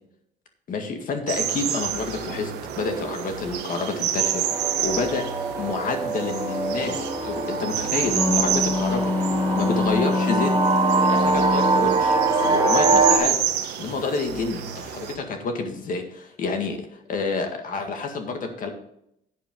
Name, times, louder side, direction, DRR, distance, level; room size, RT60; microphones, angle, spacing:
voice 1, 0.7-4.4 4.8-5.2 5.6-9.1 9.5-10.5 11.1-18.7, left 4 dB, 55° left, 4 dB, 1.9 m, -29 dB
sound 1, 1.3-15.2, right 9 dB, 85° right, 1.4 m, -29 dB
sound 2, 4.2-13.2, right 3 dB, 25° right, 2.5 m, -24 dB
Wind instrument woodwind instrument, 7.9-12.1, left 3 dB, 10° left, 0.5 m, -25 dB
10.5 x 8.0 x 3.8 m, 0.76 s
cardioid pair, 110°, 17 cm